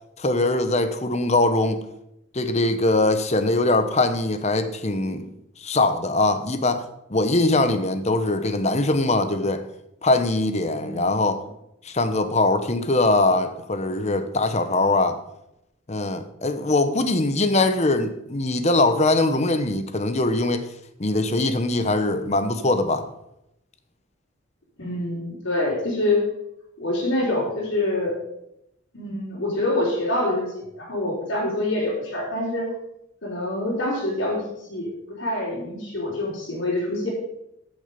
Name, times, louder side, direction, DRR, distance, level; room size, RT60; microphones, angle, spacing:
voice 1, 0.2-1.8 2.3-5.3 5.6-6.8 7.1-9.6 10.0-11.4 11.8-15.2 15.9-20.7 21.0-23.0, left 2 dB, 30° left, 0.9 m, -22 dB
voice 2, 10.8-11.2 24.8-26.2 26.8-28.2 28.9-32.7 33.2-34.4 34.7-37.1, left 1 dB, 65° left, 3.8 m, -26 dB
13.5 x 7.1 x 5.2 m
head